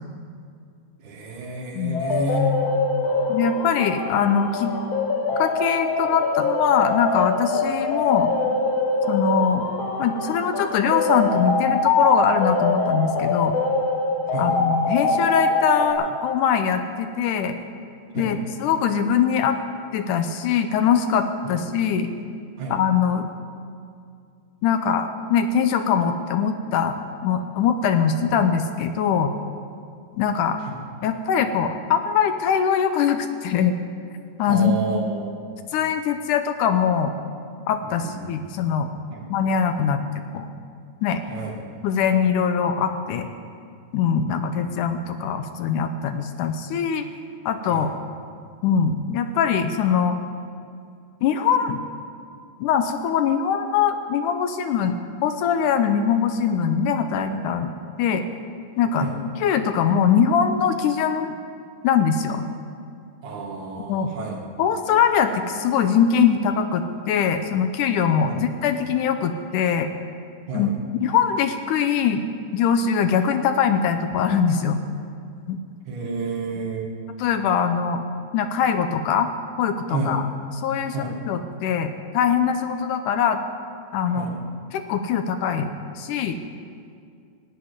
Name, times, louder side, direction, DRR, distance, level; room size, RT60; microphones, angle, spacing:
voice 1, 1.0-2.5 14.3-14.5 18.1-18.3 21.4-21.6 22.6-22.8 34.5-35.3 37.8-38.3 39.1-39.2 41.3-41.6 44.6-44.8 47.7-47.9 59.0-59.1 63.2-64.4 68.3-68.4 70.5-70.7 75.8-76.9 79.9-80.2 80.9-81.2 84.1-84.3, right 2 dB, 65° right, -2 dB, 3.4 m, -30 dB
sound 1, 1.9-15.9, left 3 dB, 55° left, 2.1 m, -23 dB
voice 2, 3.3-4.7 5.4-8.3 9.1-9.7 10.0-13.6 14.4-17.6 18.1-19.6 19.9-22.1 22.7-23.3 24.6-29.3 30.1-30.6 31.0-33.8 34.4-34.8 35.7-37.2 37.7-38.9 39.3-40.0 40.3-40.5 41.0-41.2 41.8-43.3 43.9-47.0 47.5-47.9 48.6-50.2 51.2-51.8 52.6-58.3 58.8-59.1 59.4-61.3 61.8-62.5 63.9-64.1 64.6-69.9 70.5-70.7 71.0-72.2 72.5-74.8 75.5-75.6 77.2-78.0 78.3-79.3 79.6-80.2 80.5-83.4 83.9-84.3 84.7-86.4, left 7 dB, 80° left, 8 dB, 2.1 m, -22 dB
17.5 x 8.1 x 9.6 m, 2.3 s
omnidirectional pair, 3.9 m